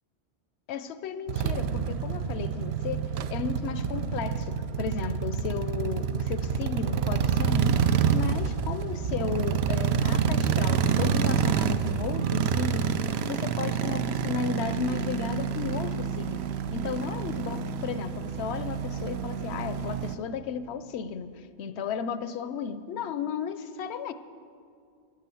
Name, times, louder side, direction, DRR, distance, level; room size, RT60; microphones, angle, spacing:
voice 1, 0.7-7.8 8.1-13.0 13.3-16.4 16.7-24.1, left 6 dB, 75° left, 12 dB, 0.8 m, -34 dB
sound 1, 1.3-20.2, right 7 dB, 75° right, 0.8 m, -28 dB
9.9 x 9.4 x 6.9 m, 2.3 s
omnidirectional pair, 1.1 m